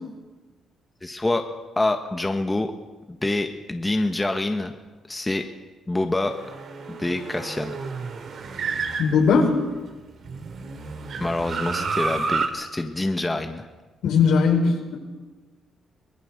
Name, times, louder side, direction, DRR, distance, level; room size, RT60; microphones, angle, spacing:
voice 1, 1.0-1.4 1.8-2.7 3.1-4.7 5.1-5.4 5.9-6.3 6.9-7.8 11.2-13.6, left 2 dB, 15° left, 5 dB, 1.6 m, -26 dB
sound 1, 6.3-9.7 10.2-12.5, right 4 dB, 60° right, 3.0 m, -30 dB
voice 2, 9.0-9.6 14.0-15.0, left 5 dB, 75° left, 2 dB, 5.3 m, -19 dB
23.5 x 19.0 x 6.8 m, 1.3 s
cardioid pair, 90°, 0 cm